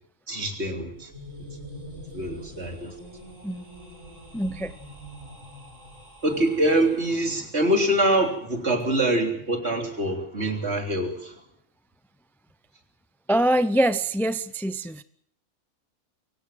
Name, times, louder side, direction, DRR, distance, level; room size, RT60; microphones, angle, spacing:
voice 1, 0.3-1.1 2.1-3.0 6.2-11.4, right 1 dB, 60° right, 4 dB, 3.9 m, -24 dB
sound 1, 0.8-7.6, equal, 75° right, 7.1 m, -44 dB
voice 2, 4.3-4.7 13.3-15.0, right 1 dB, ahead, 14 dB, 0.5 m, -24 dB
23.5 x 17.5 x 7.7 m, 0.64 s
omnidirectional pair, 1.3 m